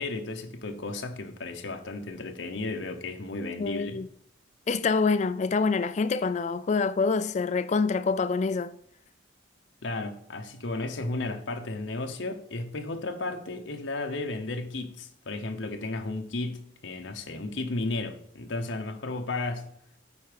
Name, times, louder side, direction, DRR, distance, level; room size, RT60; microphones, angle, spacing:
voice 1, 0.0-4.0 9.8-19.7, left 2 dB, 70° left, 0.9 m, -34 dB
voice 2, 3.6-4.1 4.7-8.8, left 4 dB, 35° left, 0.3 m, -26 dB
8.3 x 4.5 x 5.1 m
head